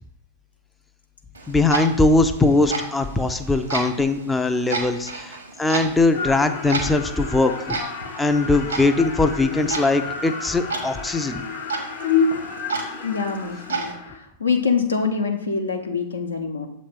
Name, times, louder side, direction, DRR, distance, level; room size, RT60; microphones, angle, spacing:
Clock, 1.3-13.9, right 4 dB, 80° right, 1.2 m, -33 dB
voice 1, 1.5-7.8 8.2-11.4, left 2 dB, 10° left, 7 dB, 0.4 m, -21 dB
sound 1, 6.1-14.2, left 5 dB, 50° left, 0.9 m, -29 dB
voice 2, 13.0-13.9 14.4-16.7, left 5 dB, 80° left, 3 dB, 0.8 m, -24 dB
7.1 x 3.1 x 5.1 m, 0.82 s
figure-of-eight pair, 95°, 0 cm